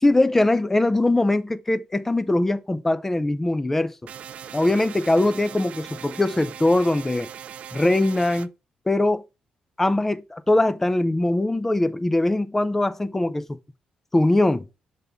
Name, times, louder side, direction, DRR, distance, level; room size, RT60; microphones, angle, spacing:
voice 1, 0.0-3.9 4.5-7.3 7.7-8.5 8.9-9.2 9.8-13.6 14.1-14.6, left 2 dB, 15° left, 0.5 m, -21 dB
sound 1, 4.1-8.5, right 9 dB, 60° right, 0.3 m, -40 dB
6.8 x 4.1 x 3.5 m
cardioid pair, 120°, 2 cm